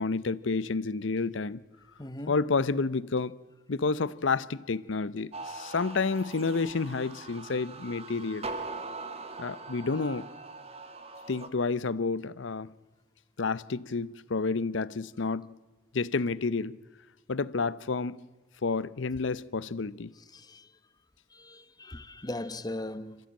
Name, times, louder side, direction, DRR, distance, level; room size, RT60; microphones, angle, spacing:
voice 1, 0.0-1.6 2.3-3.3 3.7-8.5 9.4-10.3 11.3-12.7 13.4-15.5 15.9-16.8 17.3-18.2 18.6-20.1, left 4 dB, 80° left, 0.7 m, -30 dB
voice 2, 2.0-2.3 20.3-20.6 21.3-23.2, left 1 dB, 20° left, 1.0 m, -38 dB
sound 1, 5.3-11.5, right 3 dB, 30° right, 1.6 m, -41 dB
26.0 x 14.5 x 8.8 m
head